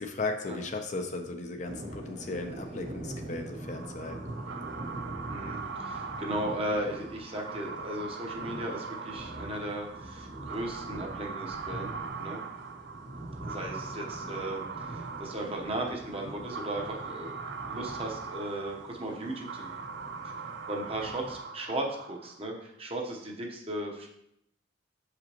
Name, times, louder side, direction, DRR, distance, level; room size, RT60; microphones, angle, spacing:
voice 1, 0.0-4.2, left 3 dB, 40° left, 4 dB, 0.6 m, -36 dB
sound 1, 1.7-21.4, right 1 dB, 85° right, 1.8 m, -44 dB
sound 2, 3.6-22.5, right 5 dB, 60° right, 0.4 m, -41 dB
voice 2, 5.3-12.4 13.4-19.8 20.7-24.1, right 1 dB, 30° right, 0 dB, 0.9 m, -36 dB
7.2 x 5.0 x 2.9 m, 0.76 s
head